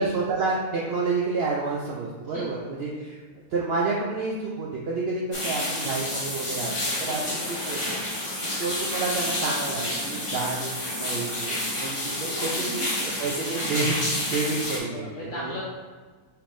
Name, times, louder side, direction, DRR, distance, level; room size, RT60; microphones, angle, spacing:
voice 1, 0.0-3.2 3.5-7.9 8.4-15.6, right 3 dB, 70° right, -3 dB, 0.5 m, -29 dB
sound 1, 5.3-14.8, left 1 dB, 25° left, 0.9 m, -29 dB
voice 2, 7.1-8.4 12.6-12.7 13.3-13.4 14.9-15.6, left 1 dB, 60° left, -6 dB, 1.0 m, -38 dB
5.4 x 3.5 x 2.6 m, 1.4 s
omnidirectional pair, 1.7 m